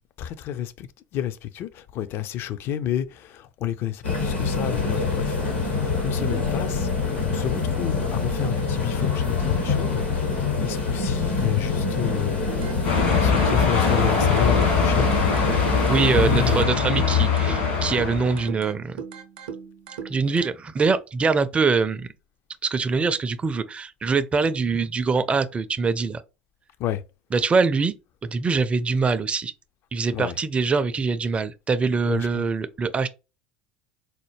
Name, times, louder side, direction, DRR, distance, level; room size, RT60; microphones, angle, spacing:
voice 1, 0.2-15.1 16.2-16.9 26.8-27.0 30.1-30.4 32.1-32.4, left 11 dB, 45° left, 0.4 m, -30 dB
sound 1, 4.0-16.6, left 4 dB, 85° left, 1.5 m, -25 dB
sound 2, 12.5-20.5, right 7 dB, 65° right, 0.6 m, -39 dB
sound 3, 12.8-18.5, left 6 dB, 65° left, 1.5 m, -22 dB
voice 2, 15.9-19.0 20.0-22.1 22.6-26.2 27.3-27.9 28.2-29.5 29.9-33.1, right 4 dB, 20° right, 0.4 m, -23 dB
4.2 x 2.1 x 3.1 m
figure-of-eight pair, 70°, 5 cm